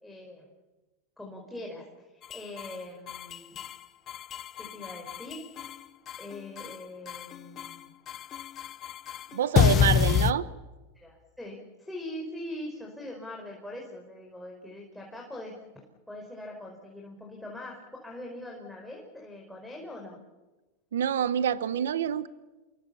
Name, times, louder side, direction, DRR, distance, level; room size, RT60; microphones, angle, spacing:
voice 1, 0.0-0.5 1.2-3.6 4.6-5.5 6.2-7.9 11.0-20.2, left 1 dB, 5° left, -1 dB, 5.1 m, -42 dB
sound 1, 2.2-2.8 3.1-3.8 4.1-5.8 6.1-6.8 7.1-7.8 8.1-10.3, left 10 dB, 30° left, 0.8 m, -27 dB
voice 2, 9.3-10.5 20.9-22.3, right 9 dB, 90° right, 14 dB, 1.0 m, -26 dB
28.5 x 22.5 x 7.1 m, 1.1 s
supercardioid pair, 130°, 0 cm